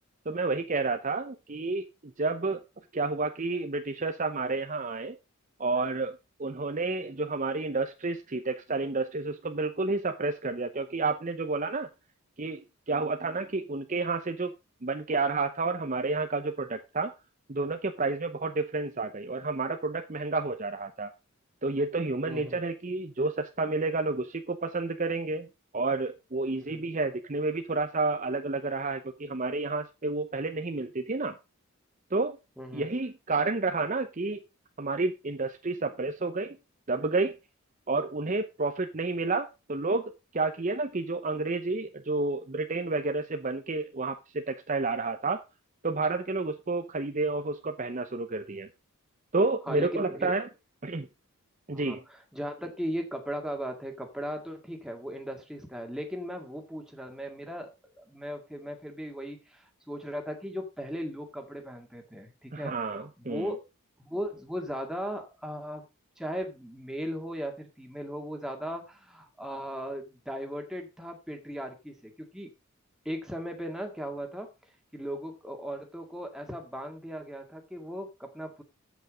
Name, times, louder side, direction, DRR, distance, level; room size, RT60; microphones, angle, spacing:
voice 1, 0.3-2.6 2.9-5.2 5.6-11.9 12.4-14.5 14.8-17.1 17.5-21.1 21.6-25.5 25.7-31.4 32.1-32.4 32.7-34.4 34.8-36.6 36.9-37.3 37.9-45.4 45.8-48.7 49.3-50.5 50.8-51.1 51.7-52.0 62.5-63.5, right 3 dB, 35° right, 6 dB, 0.7 m, -30 dB
voice 2, 22.3-22.6 26.6-26.8 32.6-32.9 49.7-50.3 51.7-63.6 64.0-65.8 66.2-72.5 73.1-74.5 74.9-78.6, equal, ahead, 3 dB, 1.9 m, -37 dB
8.2 x 8.1 x 5.0 m, 0.27 s
head